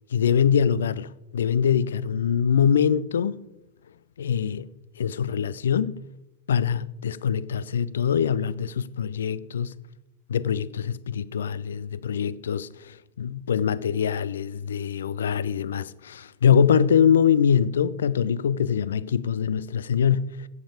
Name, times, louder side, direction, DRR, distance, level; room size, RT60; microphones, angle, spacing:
voice 1, 0.1-3.4 4.2-6.0 6.5-9.7 10.3-20.5, left 8 dB, 65° left, 0.4 m, -23 dB
16.5 x 7.2 x 5.0 m
figure-of-eight pair, 90°, 0 cm